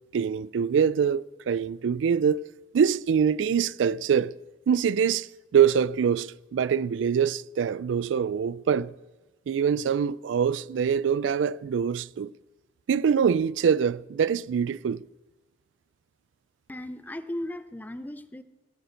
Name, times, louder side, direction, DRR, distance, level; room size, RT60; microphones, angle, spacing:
voice 1, 0.1-2.4 2.7-4.3 4.7-8.9 9.5-12.3 12.9-15.0, right 7 dB, 85° right, 0.3 m, -24 dB
voice 2, 16.7-18.4, left 1 dB, 10° left, 0.5 m, -36 dB
17.0 x 6.8 x 6.4 m
head